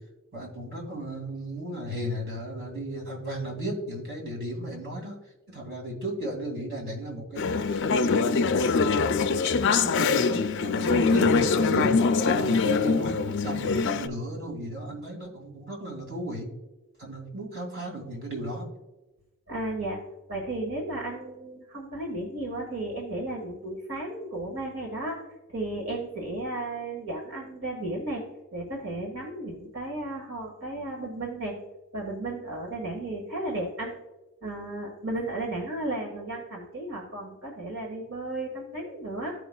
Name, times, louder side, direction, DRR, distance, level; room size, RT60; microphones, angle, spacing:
voice 1, 0.3-5.2 5.5-12.0 12.3-16.5 17.0-18.7, right 1 dB, 50° right, -1 dB, 2.4 m, -35 dB
Conversation / Chatter, 7.4-14.1, left 4 dB, 60° left, 0.4 m, -23 dB
voice 2, 19.5-20.0 20.3-25.2 25.5-28.2 28.5-31.5 31.9-33.9 34.4-39.3, right 2 dB, 70° right, -1 dB, 1.6 m, -34 dB
15.0 x 5.0 x 2.3 m, 1.1 s
head